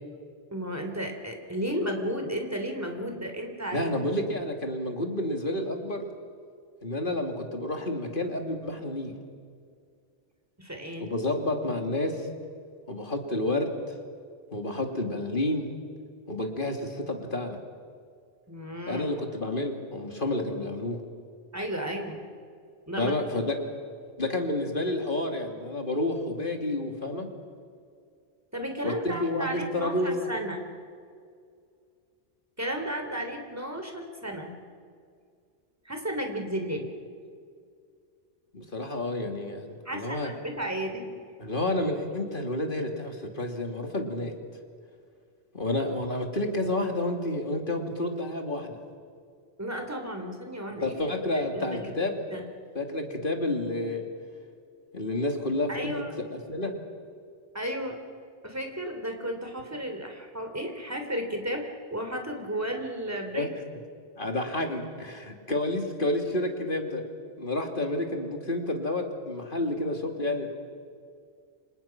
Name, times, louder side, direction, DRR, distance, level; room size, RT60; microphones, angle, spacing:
voice 1, 0.5-3.9 10.6-11.1 18.5-19.2 21.5-22.2 22.9-23.1 28.5-30.6 32.6-34.5 35.8-36.9 39.8-41.1 49.6-51.0 51.3-51.9 52.3-52.5 55.7-56.1 57.5-58.0 58.4-63.5, equal, 15° right, 3 dB, 3.4 m, -33 dB
voice 2, 3.7-6.1 6.8-9.1 11.0-12.3 12.9-13.8 14.5-15.7 16.3-17.6 18.9-21.0 23.0-23.6 24.2-27.3 28.8-30.3 38.5-40.3 41.4-44.3 45.5-48.8 50.8-52.2 52.7-54.0 54.9-56.0 56.3-56.7 63.3-63.5 64.2-67.0 67.4-70.5, left 1 dB, 45° left, 3 dB, 2.9 m, -30 dB
29.5 x 26.5 x 6.0 m, 2.2 s
omnidirectional pair, 1.2 m